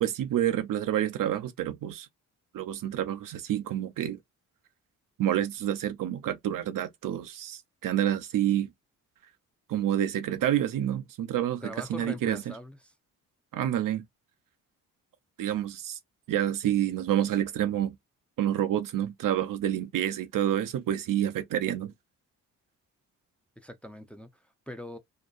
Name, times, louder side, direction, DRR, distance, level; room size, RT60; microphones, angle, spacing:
voice 1, 0.0-2.1 2.5-4.2 5.2-8.7 9.7-11.6 11.9-12.4 13.5-14.0 15.4-16.0 16.3-18.0 18.4-21.9, right 11 dB, 60° right, 0.5 m, -28 dB
voice 2, 11.6-12.9 23.6-25.0, equal, 5° left, 0.5 m, -42 dB
2.7 x 2.2 x 2.4 m
supercardioid pair, 55°, 38 cm